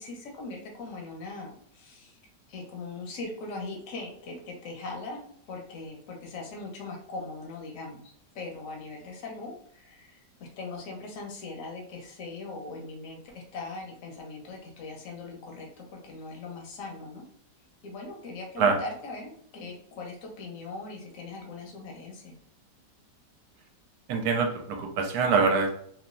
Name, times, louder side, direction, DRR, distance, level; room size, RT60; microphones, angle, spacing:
voice 1, 0.0-2.2 2.5-17.2 17.8-22.4, left 3 dB, 60° left, 0 dB, 1.0 m, -40 dB
voice 2, 24.1-25.7, right 5 dB, 70° right, 3 dB, 1.0 m, -24 dB
3.1 x 2.3 x 2.5 m, 0.65 s
omnidirectional pair, 1.9 m